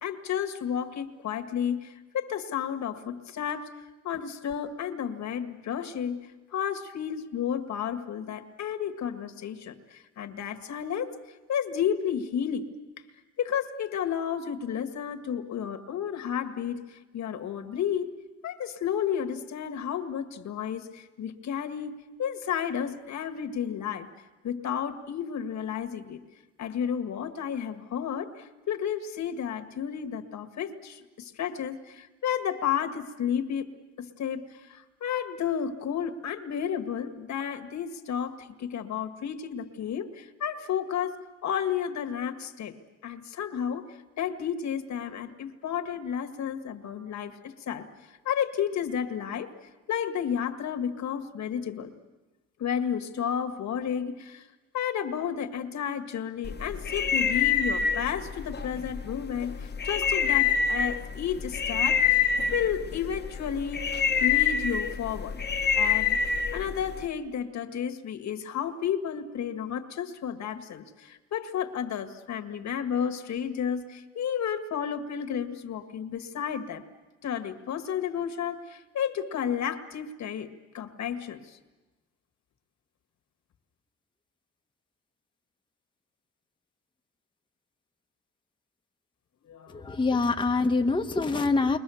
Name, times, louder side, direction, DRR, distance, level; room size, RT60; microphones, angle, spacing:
voice 1, 0.0-3.7 4.0-11.1 11.5-12.7 13.4-18.1 18.4-24.1 24.4-26.2 26.6-42.7 43.0-49.5 49.9-51.9 52.6-54.5 54.7-62.2 62.5-63.9 64.2-65.4 65.8-66.2 66.5-76.9 77.2-80.5 80.7-81.6 89.5-90.0, left 8 dB, 65° left, 6 dB, 1.8 m, -32 dB
sound 1, 56.4-67.1, left 7 dB, 35° left, 1.2 m, -27 dB
voice 2, 89.7-91.8, left 3 dB, 15° left, 3 dB, 1.1 m, -25 dB
29.5 x 22.5 x 7.1 m, 1.2 s
cardioid pair, 90°, 30 cm